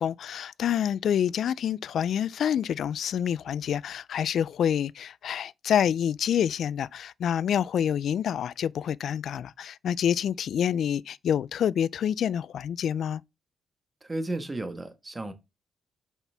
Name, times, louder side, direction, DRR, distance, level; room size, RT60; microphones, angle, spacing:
voice 1, 0.0-13.2, left 9 dB, 70° left, 0.3 m, -27 dB
voice 2, 14.0-15.3, right 2 dB, 20° right, 1.3 m, -33 dB
7.1 x 5.8 x 3.4 m
cardioid pair, 95°, 0 cm